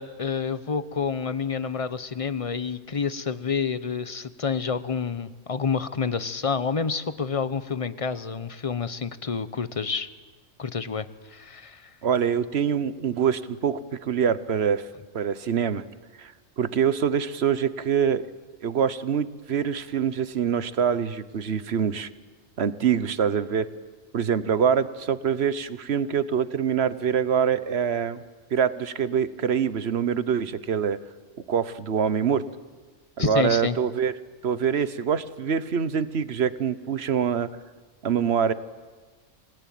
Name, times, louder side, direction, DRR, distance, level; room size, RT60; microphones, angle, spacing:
voice 1, 0.0-10.1 10.6-11.9 33.2-33.8, left 5 dB, 30° left, 13 dB, 0.9 m, -28 dB
voice 2, 12.0-14.9 15.1-15.8 16.2-16.3 16.6-18.2 18.6-22.1 22.6-23.7 24.1-28.2 28.5-31.0 31.5-32.4 33.2-34.1 34.4-37.5 38.0-38.5, right 7 dB, 60° right, 14 dB, 1.2 m, -25 dB
27.5 x 18.5 x 9.3 m, 1.4 s
omnidirectional pair, 1.3 m